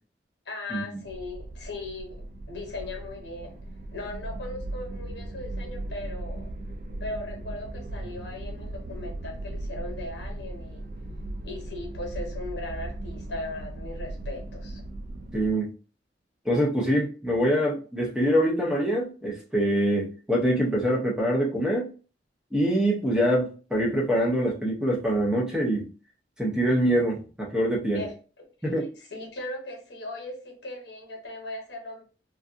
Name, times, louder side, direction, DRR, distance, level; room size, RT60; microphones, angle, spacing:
voice 1, 0.4-3.6 3.9-6.5 7.0-10.9 11.4-14.8 27.9-28.5 28.8-32.0, left 2 dB, 75° left, 0 dB, 0.9 m, -38 dB
sound 1, 1.0-15.5, right 1 dB, 55° right, 0.3 m, -37 dB
voice 2, 15.3-15.7 16.4-21.9 22.5-25.9 26.4-28.0 28.6-28.9, equal, 5° right, -2 dB, 0.5 m, -24 dB
2.5 x 2.3 x 2.4 m, 0.36 s
head